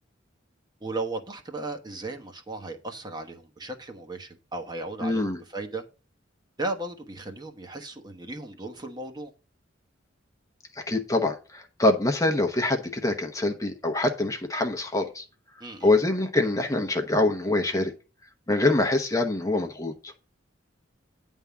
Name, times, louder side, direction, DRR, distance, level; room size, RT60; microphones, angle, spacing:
voice 1, 0.8-5.8 6.6-9.3 15.6-15.9, right 2 dB, 20° right, 1.1 m, -36 dB
voice 2, 5.0-5.4 10.7-15.2 15.8-17.9 18.5-20.1, left 2 dB, 15° left, 0.9 m, -25 dB
9.9 x 3.6 x 6.9 m
head